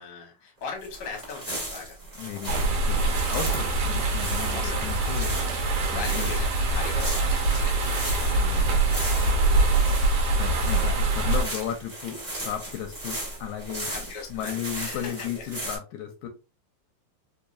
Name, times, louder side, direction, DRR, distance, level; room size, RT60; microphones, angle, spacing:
voice 1, 0.0-2.0 3.6-3.8 4.5-4.8 5.6-8.4 9.8-10.2 13.9-15.4, left 5 dB, 55° left, 0.9 m, -39 dB
sound 1, 0.8-15.8, right 1 dB, 25° right, 0.4 m, -37 dB
voice 2, 2.1-5.6 5.9-6.3 8.3-8.8 9.1-9.7 10.3-14.0 14.3-16.3, left 9 dB, 80° left, 1.8 m, -35 dB
sound 2, 2.5-11.4, right 2 dB, 70° right, 1.5 m, -24 dB
4.7 x 2.5 x 2.6 m
omnidirectional pair, 3.6 m